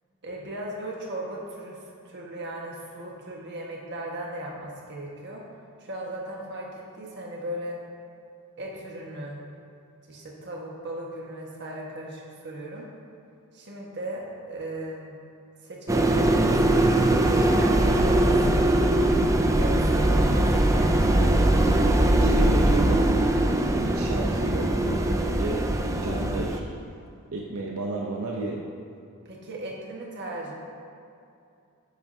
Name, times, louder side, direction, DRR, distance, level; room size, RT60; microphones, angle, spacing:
voice 1, 0.2-1.8 2.0-5.4 5.8-7.8 8.6-9.4 10.1-12.9 13.5-15.1 15.6-16.6 17.3-18.8 19.6-21.1 29.2-30.5, right 1 dB, 50° right, -2 dB, 1.5 m, -37 dB
sound 1, 15.9-26.6, right 1 dB, 15° right, 0.4 m, -21 dB
voice 2, 22.1-23.4 23.8-26.7 27.3-28.6, right 2 dB, 80° right, -1 dB, 0.7 m, -33 dB
10.5 x 8.8 x 2.8 m, 2.5 s
head